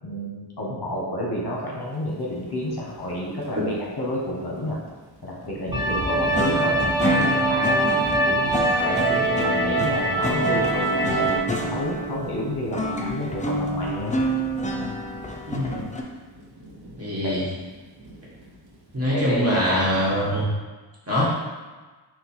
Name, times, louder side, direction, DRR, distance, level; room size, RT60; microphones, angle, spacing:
voice 1, 0.0-4.8 5.2-7.8 8.2-14.1 17.2-17.4 19.1-19.8, equal, 55° left, -4 dB, 1.0 m, -30 dB
Thunder / Rain, 2.3-20.4, right 1 dB, 55° right, 0.8 m, -40 dB
sound 1, 5.7-11.4, right 2 dB, 10° right, 1.0 m, -23 dB
sound 2, 6.3-16.0, equal, 20° left, 0.4 m, -28 dB
voice 2, 15.5-15.8 17.0-17.4 18.9-20.5 21.1-21.4, equal, 30° right, -6 dB, 1.2 m, -23 dB
4.3 x 2.3 x 4.1 m, 1.3 s
wide cardioid pair, 80°, 45 cm